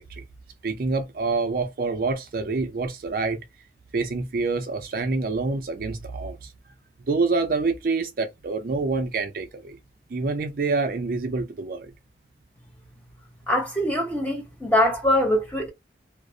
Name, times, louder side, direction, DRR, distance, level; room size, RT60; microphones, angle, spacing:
voice 1, 0.6-3.4 3.9-6.5 7.1-9.8 10.1-11.9, right 3 dB, 50° right, 0.4 m, -26 dB
voice 2, 13.5-15.7, left 1 dB, 10° left, 0.7 m, -23 dB
2.4 x 2.0 x 2.6 m
head